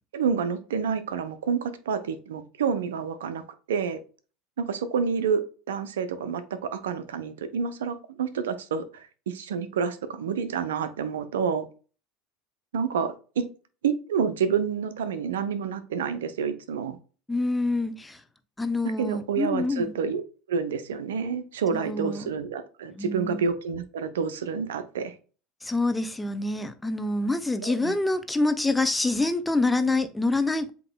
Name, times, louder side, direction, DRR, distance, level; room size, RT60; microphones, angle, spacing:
voice 1, 0.1-3.4 3.7-4.0 4.6-5.4 5.7-11.7 12.7-13.4 13.8-17.0 19.0-20.2 20.5-25.2 27.6-28.0, right 6 dB, 85° right, 0.6 m, -28 dB
voice 2, 17.3-18.2 18.6-19.9 21.7-22.3 22.9-23.5 25.6-30.7, left 2 dB, 10° left, 0.7 m, -26 dB
7.6 x 2.9 x 2.2 m
hypercardioid pair, 85°, 0 cm